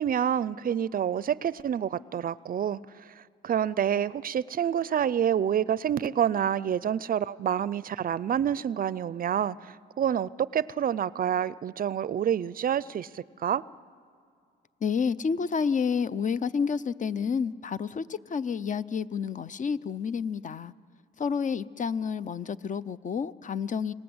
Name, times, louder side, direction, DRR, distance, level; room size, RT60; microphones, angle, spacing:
voice 1, 0.0-2.8 3.2-13.6, right 9 dB, 45° right, 0.5 m, -28 dB
voice 2, 14.8-20.7 21.2-23.9, left 6 dB, 40° left, 0.6 m, -29 dB
26.5 x 19.0 x 7.9 m
cardioid pair, 90°, 20 cm